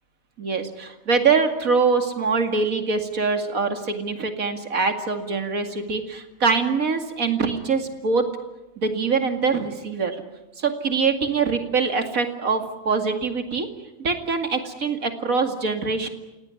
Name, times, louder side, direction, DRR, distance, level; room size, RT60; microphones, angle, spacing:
voice 1, 0.4-8.3 8.8-10.2 10.6-13.7 14.0-16.1, right 4 dB, 80° right, 6 dB, 2.7 m, -23 dB
29.5 x 17.5 x 9.8 m, 1.0 s
omnidirectional pair, 1.4 m